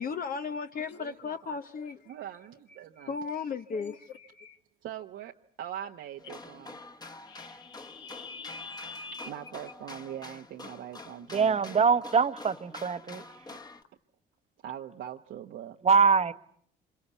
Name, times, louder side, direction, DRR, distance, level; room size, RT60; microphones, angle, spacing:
voice 1, 0.0-2.2 3.0-4.6, left 5 dB, 45° left, 1.1 m, -36 dB
voice 2, 1.0-1.5 2.1-3.1 4.8-6.8 9.3-12.0 14.6-15.8, right 10 dB, 70° right, 1.2 m, -42 dB
sound 1, 6.2-13.8, left 2 dB, 20° left, 1.6 m, -47 dB
voice 3, 7.3-9.3, left 4 dB, 65° left, 1.7 m, -44 dB
voice 4, 11.3-13.2 15.8-16.3, right 5 dB, 30° right, 1.2 m, -23 dB
26.0 x 23.0 x 8.3 m
cardioid pair, 95°, 20 cm